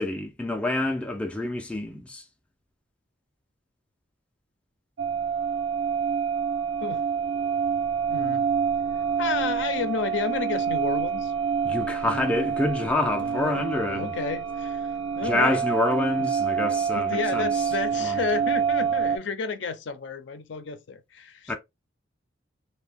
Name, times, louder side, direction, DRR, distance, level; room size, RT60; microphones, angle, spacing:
voice 1, 0.0-2.2 11.6-14.1 15.2-17.5 18.0-18.2 21.5-21.6, left 2 dB, 5° left, 0.3 m, -27 dB
sound 1, 5.0-19.2, right 6 dB, 75° right, 0.4 m, -27 dB
voice 2, 8.1-8.5 9.2-11.3 13.2-14.9 15.2-15.6 16.2-16.3 16.6-21.6, left 5 dB, 65° left, 0.5 m, -32 dB
2.6 x 2.1 x 3.4 m
head